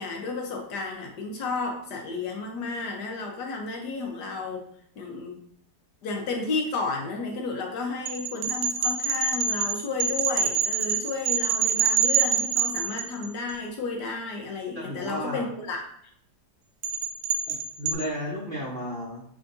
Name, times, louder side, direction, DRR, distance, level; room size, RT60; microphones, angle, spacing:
voice 1, 0.0-4.6 5.0-5.4 6.0-15.8, left 3 dB, 70° left, 2 dB, 1.4 m, -32 dB
sound 1, 8.1-13.5 16.8-17.9, right 6 dB, 85° right, 1.2 m, -25 dB
voice 2, 14.7-15.5 17.5-19.2, equal, 45° right, -5 dB, 0.7 m, -33 dB
5.0 x 3.4 x 2.6 m, 0.67 s
omnidirectional pair, 1.9 m